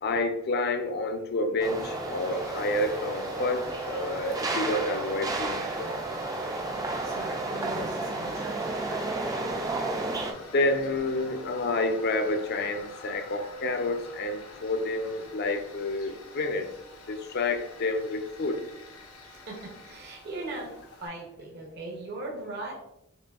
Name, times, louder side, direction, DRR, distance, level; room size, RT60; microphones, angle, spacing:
voice 1, 0.0-6.0 10.5-16.7 17.1-18.6, left 2 dB, 50° left, 6 dB, 0.4 m, -29 dB
sound 1, 1.6-10.3, right 2 dB, 15° right, 0.3 m, -32 dB
Tools, 1.8-21.1, left 3 dB, 90° left, 0.7 m, -47 dB
voice 2, 7.0-9.4 19.3-22.7, right 2 dB, 50° right, -2 dB, 0.7 m, -40 dB
4.9 x 2.6 x 2.3 m, 0.82 s
head